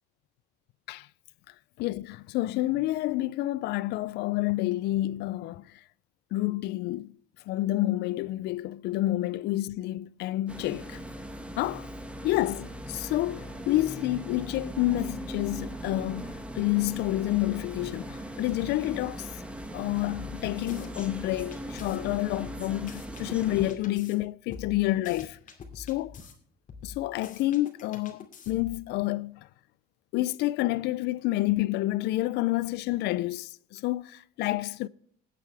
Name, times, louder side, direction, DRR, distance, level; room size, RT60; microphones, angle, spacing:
voice 1, 1.8-5.7 6.3-7.1 7.5-11.0 11.6-11.9 12.2-19.3 19.7-25.4 25.8-26.1 26.8-29.5 30.1-34.9, left 17 dB, 80° left, 0.4 m, -29 dB
sound 1, 10.5-23.7, right 1 dB, 5° right, 1.6 m, -39 dB
sound 2, 20.1-21.1 21.5-24.2 24.5-26.3 26.7-28.8, left 5 dB, 50° left, 2.5 m, -45 dB
20.5 x 8.3 x 3.4 m
cardioid pair, 110°, 17 cm